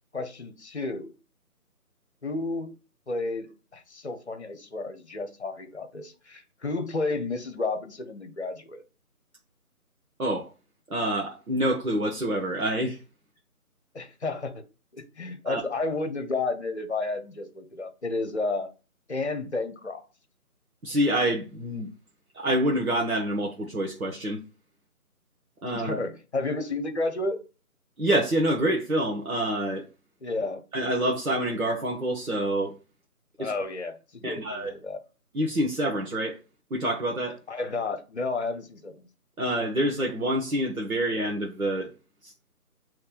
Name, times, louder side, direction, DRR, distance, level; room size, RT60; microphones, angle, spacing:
voice 1, 0.1-1.1 2.2-2.8 3.1-8.8 13.9-14.6 14.9-18.7 19.1-20.0 25.8-27.4 30.2-30.6 33.4-35.0 37.5-39.1, left 3 dB, 50° left, 0.9 m, -31 dB
voice 2, 10.9-13.0 15.4-15.6 20.8-21.9 22.3-24.4 25.6-26.0 28.0-29.8 30.7-32.7 33.4-33.5 34.2-34.7 35.3-36.4 36.7-37.4 39.4-41.9 42.2-42.3, right 1 dB, 65° right, 1.2 m, -27 dB
6.7 x 3.2 x 2.4 m
figure-of-eight pair, 160°, 45 cm